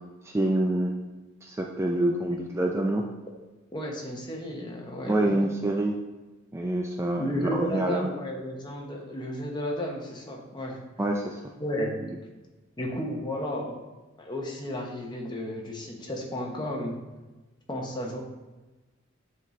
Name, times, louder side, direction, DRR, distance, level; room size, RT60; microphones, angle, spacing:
voice 1, 0.2-0.9 1.4-3.0 5.1-5.9 6.5-8.1 11.0-11.4, right 1 dB, 15° right, 1 dB, 0.3 m, -26 dB
voice 2, 3.7-5.4 7.2-10.8 11.6-12.0 12.8-13.8 14.2-17.0 17.7-18.2, equal, 25° left, 0 dB, 0.9 m, -33 dB
7.5 x 4.0 x 3.1 m, 1.2 s
head